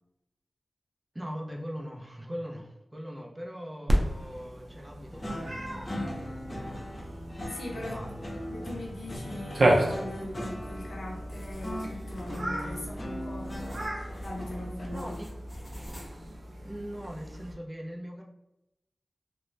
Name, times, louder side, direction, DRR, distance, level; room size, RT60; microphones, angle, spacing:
voice 1, 1.1-6.8 7.7-8.4 14.9-15.3 16.6-18.2, equal, 20° right, 0 dB, 0.5 m, -41 dB
Cat, 3.9-17.5, right 1 dB, 70° right, 0.5 m, -33 dB
sound 1, 5.1-14.9, equal, 40° left, 0.7 m, -39 dB
voice 2, 7.5-7.9 8.4-13.5 14.2-15.2, left 1 dB, 85° left, -1 dB, 0.7 m, -40 dB
sound 2, 11.3-16.5, equal, 5° left, 1.1 m, -49 dB
2.5 x 2.1 x 3.2 m, 0.89 s
cardioid pair, 50°, 0 cm